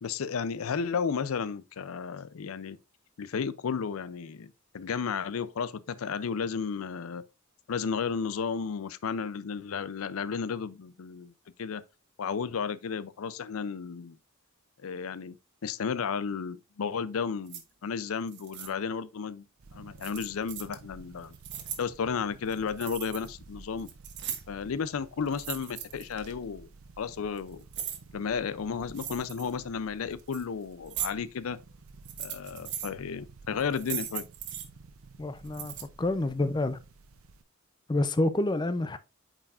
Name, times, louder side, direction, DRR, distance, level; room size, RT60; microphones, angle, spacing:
voice 1, 0.0-2.8 3.2-7.2 7.7-11.3 11.6-11.8 12.2-14.2 14.8-15.4 15.6-19.5 19.7-21.3 21.8-23.9 24.5-26.7 27.0-27.6 28.1-31.6 32.2-34.3, left 6 dB, 80° left, 0.5 m, -33 dB
sound 1, 17.5-17.6 18.3-18.7 20.0-20.7 21.2-21.8 22.5-23.3 23.6-24.6 25.3-26.3 27.1-28.0 28.9-29.5 30.1-30.4 30.9-31.1 31.9-32.9 33.6-34.7 35.5-35.8, right 10 dB, 55° right, 1.2 m, -38 dB
sound 2, 19.6-37.4, right 3 dB, 80° right, 0.7 m, -52 dB
voice 2, 35.2-36.8 37.9-39.0, left 2 dB, 20° left, 0.5 m, -28 dB
8.7 x 4.8 x 2.4 m
head